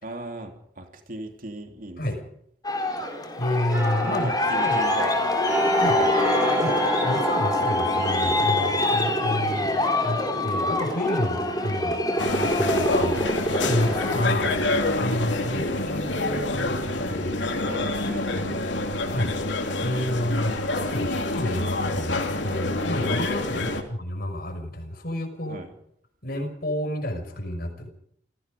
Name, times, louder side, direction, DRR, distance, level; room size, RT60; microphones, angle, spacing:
voice 1, 0.0-2.0 4.0-5.2 5.7-6.1 14.4-14.6 17.6-18.7 23.6-23.8 25.5-25.7, right 1 dB, 50° right, 4 dB, 3.2 m, -38 dB
Aircraft, 2.6-14.3, left 1 dB, 20° left, 4.3 m, -25 dB
voice 2, 3.4-4.8 5.8-6.0 6.6-9.7 10.0-12.0 12.4-13.2 13.6-14.5 15.0-17.4 18.9-19.4 19.8-25.6 26.2-27.9, left 1 dB, 55° left, 5 dB, 5.9 m, -29 dB
sound 1, 3.7-15.3 15.7-15.9, right 1 dB, 15° right, 3.7 m, -33 dB
sound 2, 12.2-23.8, left 2 dB, 85° left, 3.2 m, -27 dB
29.0 x 17.5 x 5.3 m, 0.70 s
head